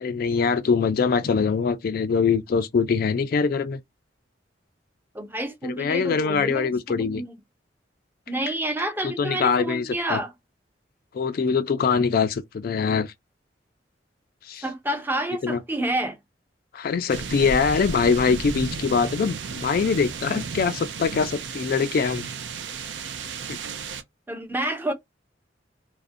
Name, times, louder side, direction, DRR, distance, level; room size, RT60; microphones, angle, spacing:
voice 1, 0.0-3.8 5.6-7.2 9.0-10.2 11.1-13.1 14.4-14.6 15.4-15.6 16.7-22.3 23.5-23.6, left 5 dB, 55° left, 0.3 m, -23 dB
voice 2, 5.1-7.3 8.3-10.3 14.6-16.2 24.3-24.9, right 1 dB, 10° right, 0.5 m, -29 dB
sound 1, 17.1-24.0, right 5 dB, 75° right, 0.4 m, -34 dB
2.5 x 2.0 x 2.5 m
head